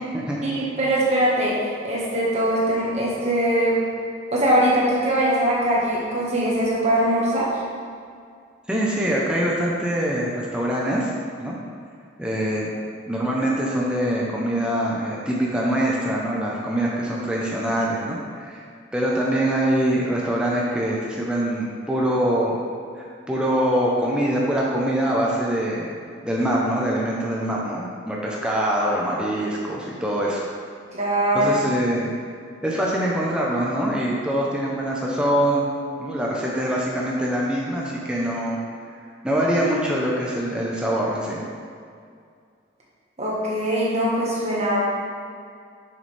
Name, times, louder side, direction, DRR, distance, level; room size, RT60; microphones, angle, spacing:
voice 1, 0.4-1.6 1.8-3.8 4.3-7.5 30.9-31.6 43.2-44.8, right 1 dB, 35° right, -5 dB, 1.5 m, -21 dB
voice 2, 8.7-11.1 11.4-11.6 12.2-12.7 13.1-18.6 18.9-22.6 23.0-25.9 26.2-30.4 31.3-32.2 32.6-35.7 36.0-38.6 39.2-41.4, right 1 dB, 5° right, -5 dB, 0.7 m, -24 dB
6.6 x 6.6 x 3.4 m, 2.2 s
head